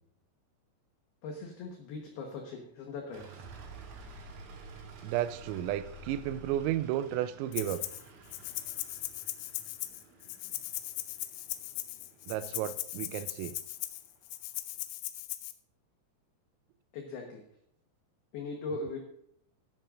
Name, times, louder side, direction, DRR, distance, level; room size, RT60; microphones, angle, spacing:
voice 1, 1.2-3.3 16.9-17.4 18.3-19.0, left 3 dB, 70° left, 2 dB, 2.7 m, -39 dB
sound 1, 3.1-14.9, right 5 dB, 70° right, 4.2 m, -55 dB
sound 2, 3.2-9.1, right 1 dB, 45° right, 4.1 m, -51 dB
voice 2, 5.0-7.8 12.3-13.6, right 12 dB, 90° right, 13 dB, 3.4 m, -33 dB
Rattle (instrument), 7.5-8.0 8.3-15.5, left 16 dB, 90° left, 3.5 m, -39 dB
15.0 x 11.0 x 2.5 m, 0.74 s
omnidirectional pair, 5.9 m